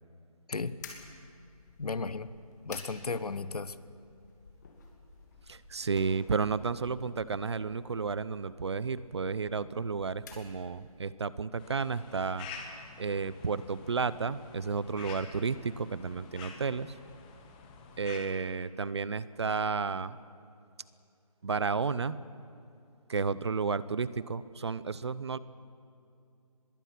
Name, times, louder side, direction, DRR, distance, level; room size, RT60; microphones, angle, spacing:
voice 1, 0.5-0.8 1.8-2.3 2.6-3.8, left 4 dB, 75° left, 14 dB, 1.2 m, -34 dB
sound 1, 0.8-11.1, left 4 dB, 30° left, 2.8 m, -53 dB
voice 2, 5.5-12.5 13.0-16.9 18.0-20.2 21.4-22.2 23.1-25.4, right 5 dB, 45° right, 18 dB, 0.7 m, -32 dB
sound 2, 11.6-18.2, left 5 dB, 15° left, 1.3 m, -48 dB
24.0 x 21.5 x 6.0 m, 2.6 s
figure-of-eight pair, 165°, 19 cm